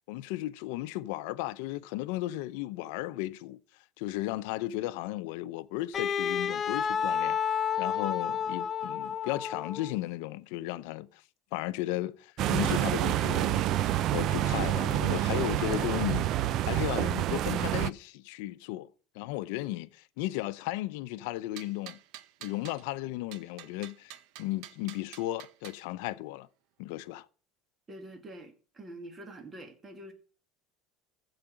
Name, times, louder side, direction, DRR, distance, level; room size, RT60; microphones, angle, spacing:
voice 1, 0.1-3.6 4.0-7.4 7.8-11.2 11.5-16.3 16.6-18.9 19.1-22.0 22.4-24.1 24.4-26.5 26.8-27.3, left 16 dB, 70° left, 0.7 m, -35 dB
Wind instrument woodwind instrument, 5.9-10.0, left 7 dB, 25° left, 0.7 m, -30 dB
sound 1, 12.4-17.9, right 13 dB, 45° right, 0.4 m, -28 dB
sound 2, 21.6-22.8 23.3-25.8, right 13 dB, 60° right, 0.9 m, -48 dB
voice 2, 27.9-30.1, right 1 dB, 20° right, 2.1 m, -46 dB
15.0 x 4.9 x 6.3 m
supercardioid pair, 140°, 0 cm